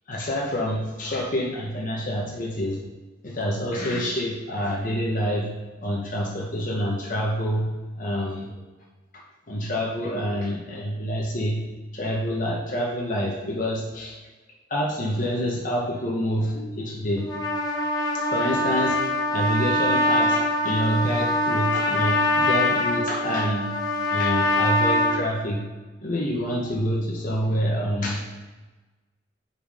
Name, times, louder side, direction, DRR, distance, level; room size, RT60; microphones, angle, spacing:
voice 1, 0.1-2.8 3.2-5.5 5.8-8.7 9.5-14.2 14.7-17.3 18.1-19.0 19.3-23.7 24.1-25.7 26.0-28.3, equal, 50° left, -3 dB, 1.0 m, -27 dB
Trumpet, 17.2-25.2, left 1 dB, 20° left, 0.9 m, -23 dB
6.7 x 4.2 x 4.9 m, 1.2 s
head